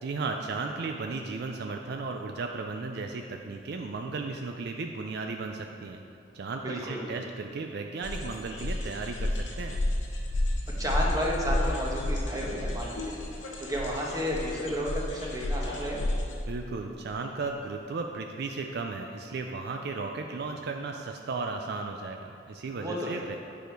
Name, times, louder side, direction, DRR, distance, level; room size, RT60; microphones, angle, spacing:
voice 1, 0.0-6.0 6.3-9.8 16.5-23.4, right 3 dB, 60° right, 4 dB, 0.4 m, -35 dB
voice 2, 6.6-7.2 10.8-13.1 13.6-16.0 22.8-23.3, equal, 20° right, -3 dB, 1.1 m, -32 dB
sound 1, 8.0-16.4, left 1 dB, 75° left, 1.1 m, -31 dB
9.0 x 5.0 x 4.5 m, 2.6 s
head